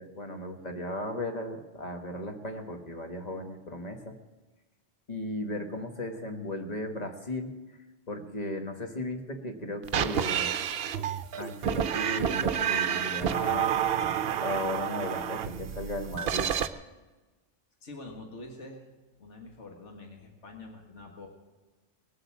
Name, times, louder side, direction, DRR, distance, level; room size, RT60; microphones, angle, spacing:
voice 1, 0.0-4.1 5.1-7.5 8.1-10.5 11.4-13.7 14.4-16.5, left 1 dB, 35° left, 5 dB, 1.5 m, -36 dB
sound 1, 9.8-16.7, right 9 dB, 60° right, 0.8 m, -29 dB
voice 2, 17.8-18.9 19.2-21.3, left 2 dB, 70° left, 1 dB, 2.1 m, -45 dB
19.5 x 7.8 x 7.3 m, 1.2 s
omnidirectional pair, 1.2 m